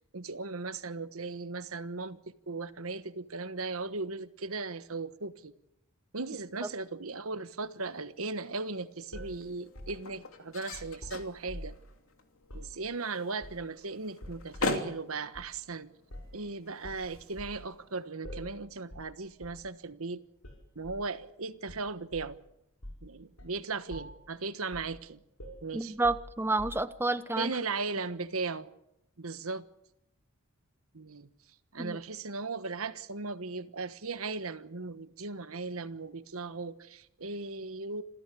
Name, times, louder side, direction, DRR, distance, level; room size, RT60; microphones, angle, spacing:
voice 1, 0.1-5.5 6.1-11.8 12.5-15.9 16.3-20.2 20.7-22.4 23.0-25.2 25.6-25.9 27.4-28.7 29.2-29.6 30.9-31.3 31.7-38.0, right 3 dB, 75° right, 1.3 m, -37 dB
sound 1, 7.7-18.1, left 2 dB, 70° left, 2.9 m, -42 dB
sound 2, 9.1-11.9 12.4-12.8 13.4-13.8 14.2-14.8 15.3-15.5 16.1-16.4 16.8-17.6 18.2-18.6 18.9-19.1 19.4-19.7 20.4-21.1 21.7-22.4 22.8-23.1 23.4-23.6 23.9-24.3 24.7-25.0 25.4-27.1, equal, 90° left, 6.2 m, -46 dB
voice 2, 25.7-27.6 31.8-32.0, right 2 dB, 10° right, 0.8 m, -30 dB
27.0 x 15.5 x 8.4 m
head